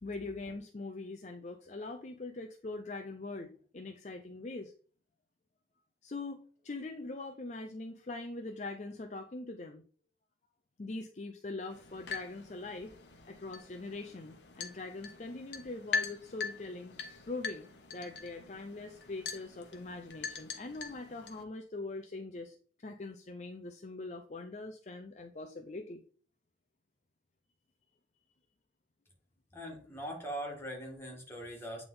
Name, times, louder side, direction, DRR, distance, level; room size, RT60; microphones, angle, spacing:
voice 1, 0.0-4.7 6.0-9.8 10.8-13.0 13.3-16.9 17.3-22.6 22.8-26.0, left 2 dB, 40° left, 5 dB, 0.5 m, -42 dB
sound 1, 11.7-21.4, left 5 dB, 70° left, 1.1 m, -42 dB
voice 2, 29.5-31.8, right 1 dB, 15° left, -1 dB, 1.8 m, -41 dB
8.8 x 3.5 x 3.9 m, 0.44 s
head